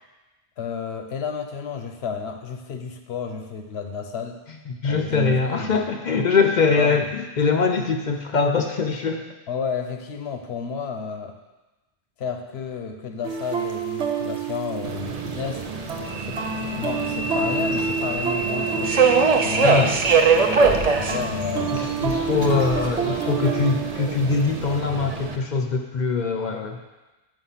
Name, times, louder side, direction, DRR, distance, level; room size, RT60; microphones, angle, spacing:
voice 1, 0.6-4.4 4.8-5.8 6.8-7.0 9.5-11.4 12.2-15.7 16.2-16.4 16.7-19.0 19.4-20.0 20.3-21.8 22.3-22.5, left 5 dB, 70° left, 6 dB, 1.0 m, -31 dB
voice 2, 4.7-9.2 19.6-19.9 21.7-26.8, left 4 dB, 50° left, 4 dB, 0.6 m, -22 dB
sound 1, 13.2-24.8, right 5 dB, 85° right, 1.2 m, -30 dB
Subway metro underground, 14.8-25.4, right 5 dB, 45° right, 0.6 m, -24 dB
7.0 x 5.5 x 5.7 m, 1.1 s
omnidirectional pair, 1.1 m